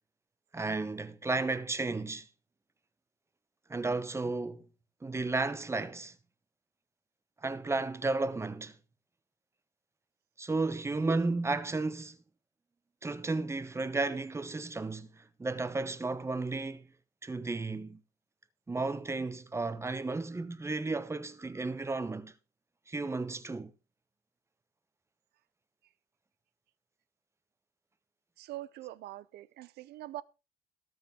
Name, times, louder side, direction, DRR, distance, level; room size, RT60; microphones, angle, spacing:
voice 1, 0.5-2.3 3.7-4.7 5.0-6.1 7.4-8.8 10.4-12.2 13.0-16.9 17.2-18.0 18.7-22.3 22.9-23.7, right 3 dB, 15° right, 1.0 m, -33 dB
voice 2, 28.4-30.2, right 15 dB, 75° right, 0.7 m, -43 dB
18.5 x 6.9 x 3.7 m
cardioid pair, 110°, 17 cm